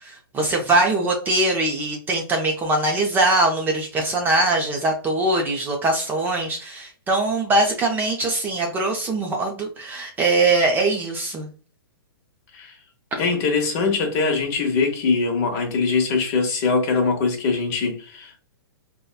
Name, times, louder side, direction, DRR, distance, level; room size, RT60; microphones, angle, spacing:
voice 1, 0.0-11.5, right 2 dB, 15° right, 0.5 m, -22 dB
voice 2, 13.2-18.4, left 4 dB, 40° left, 1.0 m, -22 dB
3.9 x 2.2 x 2.3 m
hypercardioid pair, 140°, 13 cm